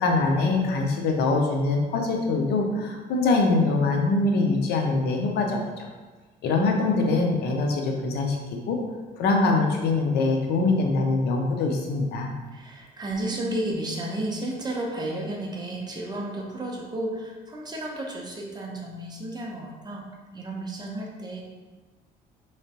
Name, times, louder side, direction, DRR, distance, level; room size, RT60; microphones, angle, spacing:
voice 1, 0.0-5.9 6.4-8.4 8.7-8.8 9.2-12.3, left 3 dB, 75° left, 2 dB, 0.6 m, -23 dB
voice 2, 12.5-20.1 20.3-21.4, right 1 dB, 25° right, -1 dB, 0.7 m, -32 dB
3.7 x 3.2 x 2.8 m, 1.3 s
cardioid pair, 110°, 17 cm